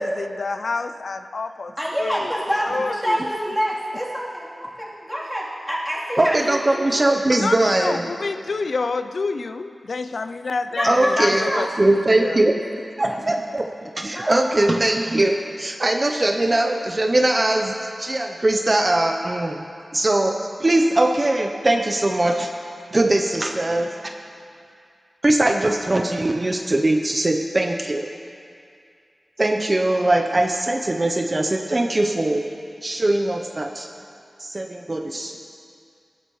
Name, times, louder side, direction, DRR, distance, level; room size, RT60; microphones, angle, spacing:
voice 1, 0.0-2.3 2.6-3.2 7.4-11.7 12.2-12.4, left 4 dB, 75° left, 10 dB, 0.3 m, -28 dB
voice 2, 1.8-6.9 10.7-11.7 13.1-13.2 14.1-14.6, equal, 5° left, -6 dB, 3.3 m, -26 dB
voice 3, 6.2-8.0 10.8-12.6 13.0-19.6 19.9-22.5 22.9-24.1 25.2-28.1 29.4-32.4 32.8-33.9 34.4-35.5, right 1 dB, 40° right, 4 dB, 0.7 m, -21 dB
18.0 x 11.0 x 3.1 m, 2.4 s
cardioid pair, 45°, 0 cm